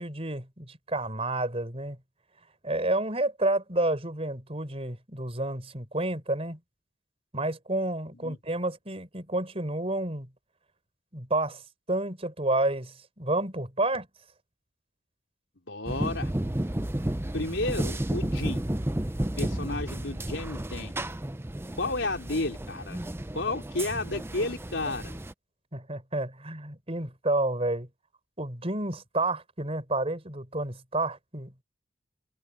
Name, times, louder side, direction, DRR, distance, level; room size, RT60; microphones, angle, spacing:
voice 1, 0.0-2.0 2.6-6.6 7.3-10.3 11.1-11.6 11.9-14.1 25.7-27.9 28.4-31.6, right 2 dB, 35° right, 4.7 m, -30 dB
voice 2, 15.7-16.3 17.3-18.6 19.4-20.9 21.8-23.0 23.3-25.2, left 2 dB, 85° left, 3.5 m, -32 dB
sound 1, 15.8-25.3, right 1 dB, 15° right, 0.7 m, -32 dB
head